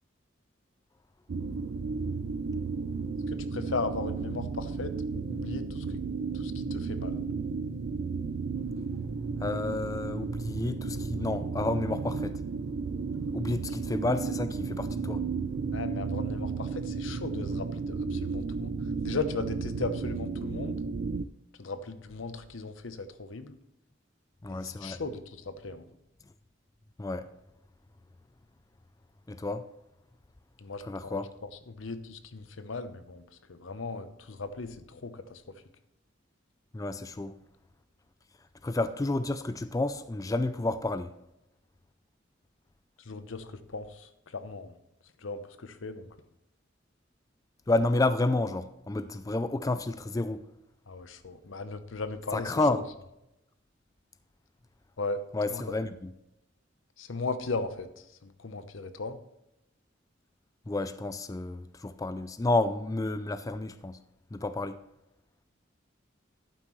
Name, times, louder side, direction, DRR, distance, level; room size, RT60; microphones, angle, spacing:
sound 1, 1.3-21.3, right 4 dB, 60° right, 0.4 m, -33 dB
voice 1, 3.3-5.9 6.3-7.2 15.7-18.7 19.0-20.8 21.6-23.6 24.5-25.8 30.6-31.2 31.7-33.2 33.5-35.4 43.1-44.7 45.2-46.1 50.9-52.5 55.0-55.2 55.5-55.6 57.0-57.9 58.2-59.2, left 3 dB, 90° left, 0.8 m, -37 dB
voice 2, 9.4-12.4 13.3-15.3 24.4-25.0 27.0-27.3 29.3-29.7 30.8-31.3 36.7-37.4 38.6-41.1 47.7-50.5 52.3-52.9 55.3-56.1 60.7-64.0 64.3-64.8, left 2 dB, 20° left, 0.4 m, -30 dB
11.5 x 9.2 x 3.1 m
head